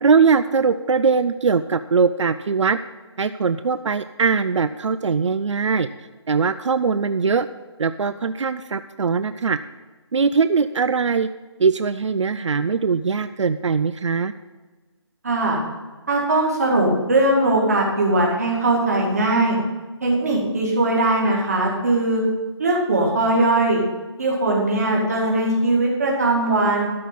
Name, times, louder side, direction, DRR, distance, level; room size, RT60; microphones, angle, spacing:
voice 1, 0.0-2.8 3.2-5.9 6.3-7.5 7.8-9.6 10.1-11.3 11.6-14.3, right 5 dB, 90° right, 11 dB, 0.5 m, -21 dB
voice 2, 15.2-15.6 16.1-19.6 20.0-22.2 22.6-23.8 24.2-26.9, right 2 dB, 35° right, -1 dB, 2.1 m, -20 dB
12.5 x 4.3 x 8.2 m, 1.3 s
hypercardioid pair, 180°, 15 cm